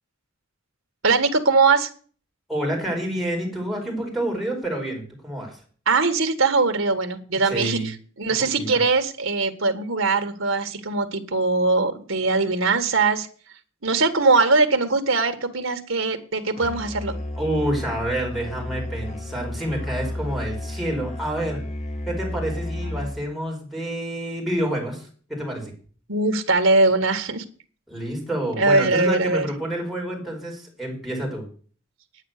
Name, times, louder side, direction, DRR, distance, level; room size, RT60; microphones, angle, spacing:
voice 1, 1.0-1.9 5.9-13.3 13.8-17.2 26.1-27.4 28.6-29.5, right 3 dB, 70° right, 7 dB, 1.6 m, -21 dB
voice 2, 2.5-5.6 7.5-7.9 8.3-8.8 17.4-21.6 22.1-25.7 27.9-31.4, right 1 dB, ahead, -2 dB, 4.8 m, -28 dB
Musical instrument, 16.6-23.4, left 1 dB, 35° left, 1.8 m, -32 dB
9.9 x 9.4 x 6.6 m, 0.42 s
head